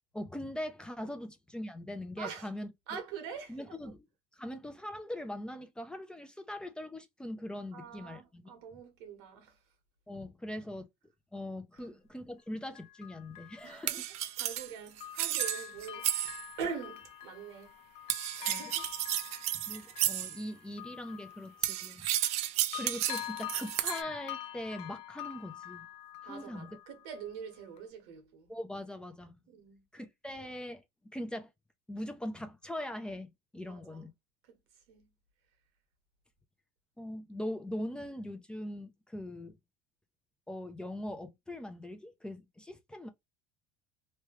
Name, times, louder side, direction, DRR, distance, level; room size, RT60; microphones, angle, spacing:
voice 1, 0.1-3.0 3.5-4.0 4.3-8.5 10.1-10.9 11.3-14.0 18.5-18.7 19.5-22.0 22.7-25.9 26.2-26.8 28.5-29.4 29.9-30.8 31.1-31.5 31.9-34.1 37.0-39.6 40.5-43.1, left 1 dB, 5° left, 0.5 m, -41 dB
voice 2, 2.2-2.5 2.9-3.8 7.7-9.6 10.1-10.2 11.7-12.0 13.6-17.8 18.3-18.9 26.2-28.5 29.5-29.8 33.6-34.1 34.4-34.6 34.9-35.1, right 6 dB, 80° right, 1.4 m, -44 dB
Bell, 11.8-11.9 12.7-14.7 15.0-22.4 22.7-27.3 27.8-27.9, left 13 dB, 50° left, 0.5 m, -46 dB
sound 1, 13.9-16.5 18.1-20.4 21.6-24.0, right 13 dB, 55° right, 0.5 m, -33 dB
3.1 x 2.2 x 3.0 m
supercardioid pair, 125°, 13 cm